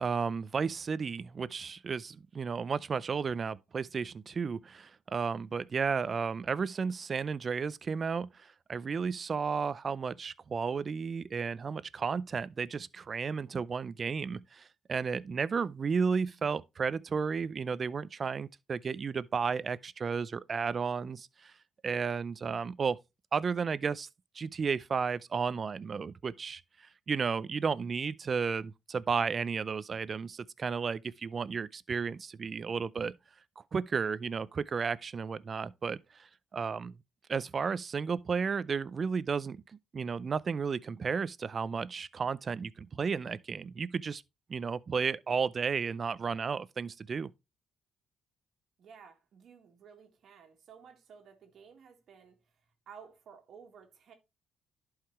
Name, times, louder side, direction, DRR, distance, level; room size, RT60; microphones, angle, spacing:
voice 1, 0.0-21.5 21.8-23.0 23.3-24.1 24.4-33.1 33.7-36.9 37.3-39.6 39.9-44.2 44.5-47.3, right 5 dB, 40° right, 0.4 m, -33 dB
voice 2, 48.8-54.1, right 6 dB, 65° right, 1.7 m, -54 dB
11.5 x 4.8 x 3.1 m
cardioid pair, 90°, 0 cm